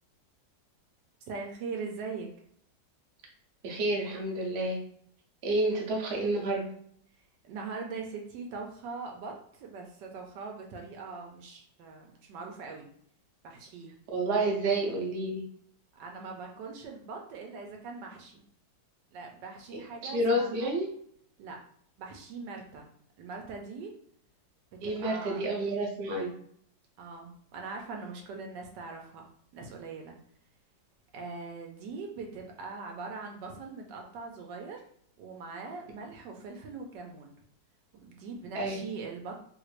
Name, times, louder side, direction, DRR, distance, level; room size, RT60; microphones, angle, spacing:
voice 1, 1.3-2.3 7.4-12.9 13.4-13.9 15.9-18.4 19.1-20.7 21.4-21.6 22.0-22.9 23.2-23.9 24.8-25.5 27.0-29.3 29.5-30.1 31.1-34.8 35.2-37.3 38.0-39.4, right 4 dB, 80° right, 1 dB, 1.2 m, -41 dB
voice 2, 3.6-4.8 5.4-6.7 14.1-15.4 19.7-20.9 24.8-26.3 38.5-38.8, right 1 dB, 50° right, -1 dB, 0.8 m, -29 dB
3.2 x 2.5 x 3.1 m, 0.63 s
omnidirectional pair, 1.9 m